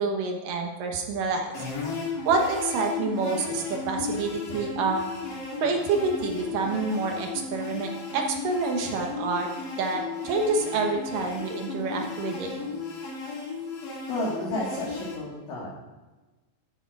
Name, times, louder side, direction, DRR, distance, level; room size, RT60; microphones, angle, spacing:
voice 1, 0.0-1.5 2.3-5.0 5.6-9.5 9.8-12.5, right 4 dB, 65° right, 2 dB, 2.5 m, -27 dB
sound 1, 1.5-15.2, left 4 dB, 85° left, 4.8 m, -35 dB
voice 2, 14.1-15.8, left 1 dB, 50° left, -5 dB, 3.0 m, -31 dB
14.0 x 6.9 x 4.7 m, 1.2 s
omnidirectional pair, 4.8 m